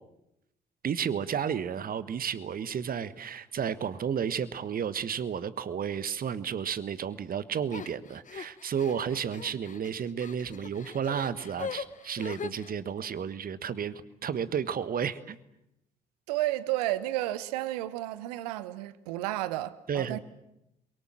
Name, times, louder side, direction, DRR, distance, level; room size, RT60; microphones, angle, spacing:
voice 1, 0.8-15.4 19.9-20.2, right 8 dB, 45° right, 1.4 m, -32 dB
sound 1, 7.7-12.7, left 6 dB, 40° left, 1.2 m, -41 dB
voice 2, 16.3-20.2, right 15 dB, 75° right, 1.1 m, -32 dB
29.0 x 23.0 x 7.6 m
figure-of-eight pair, 45°, 21 cm